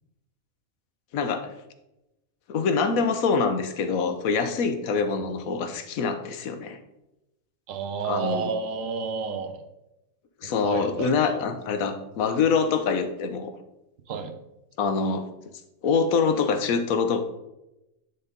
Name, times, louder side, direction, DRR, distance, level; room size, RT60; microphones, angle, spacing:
voice 1, 1.1-1.5 2.5-6.8 8.0-8.5 10.4-13.5 14.8-15.2 15.8-17.2, left 5 dB, 90° left, 8 dB, 1.2 m, -25 dB
voice 2, 7.7-9.6 10.4-11.4 14.1-14.3, right 6 dB, 70° right, 7 dB, 1.2 m, -31 dB
9.9 x 4.1 x 3.8 m, 0.92 s
omnidirectional pair, 1.4 m